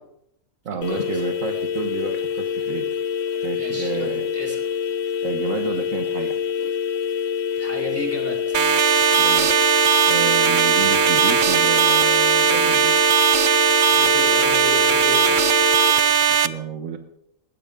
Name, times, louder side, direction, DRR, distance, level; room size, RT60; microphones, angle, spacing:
voice 1, 0.6-2.9 3.4-4.3 5.2-6.3 9.2-9.5 10.1-12.9 16.4-17.0, right 6 dB, 70° right, 7 dB, 1.6 m, -30 dB
sound 1, 0.8-15.9, left 8 dB, 65° left, 1.5 m, -26 dB
voice 2, 3.5-4.6 7.5-8.6 13.9-15.4, equal, 10° left, -2 dB, 4.8 m, -33 dB
sound 2, 8.5-16.5, right 8 dB, 50° right, 0.6 m, -18 dB
19.5 x 15.5 x 3.8 m, 0.77 s
omnidirectional pair, 1.4 m